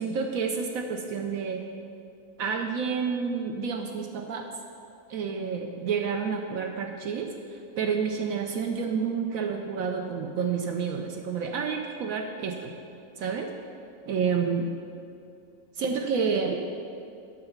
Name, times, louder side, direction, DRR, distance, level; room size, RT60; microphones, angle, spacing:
voice 1, 0.0-1.6 2.4-4.5 5.1-12.8 13.2-13.5 14.1-14.7 15.8-16.6, right 6 dB, 75° right, 4 dB, 1.0 m, -29 dB
8.7 x 6.9 x 5.7 m, 2.5 s
omnidirectional pair, 1.5 m